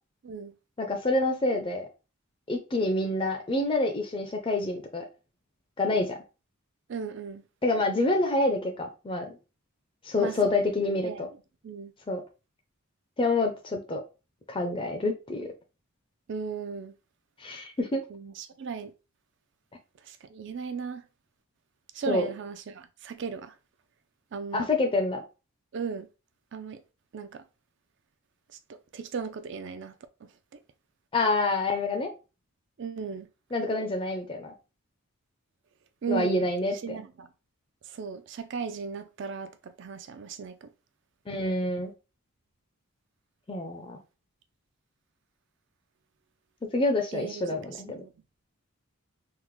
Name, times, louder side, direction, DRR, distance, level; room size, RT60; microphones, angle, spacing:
voice 1, 0.2-0.5 6.9-7.4 10.2-10.6 11.0-11.3 11.6-11.9 16.3-16.9 18.1-18.9 20.1-21.0 21.9-23.5 24.3-24.7 25.7-26.1 26.5-26.8 27.1-27.4 28.7-29.9 30.2-30.6 32.8-33.3 36.0-36.5 36.8-37.3 37.9-40.7 47.1-48.1, right 5 dB, 50° right, 0.3 m, -36 dB
voice 2, 0.8-1.9 2.5-5.0 5.8-6.2 7.6-9.4 10.0-11.3 12.1-12.2 13.2-14.0 14.5-15.5 17.4-18.0 22.1-22.3 24.5-25.2 31.1-32.1 33.5-34.5 36.1-37.0 41.3-41.9 43.5-44.0 46.7-48.0, left 2 dB, 25° left, 0.4 m, -27 dB
3.6 x 2.1 x 3.0 m
head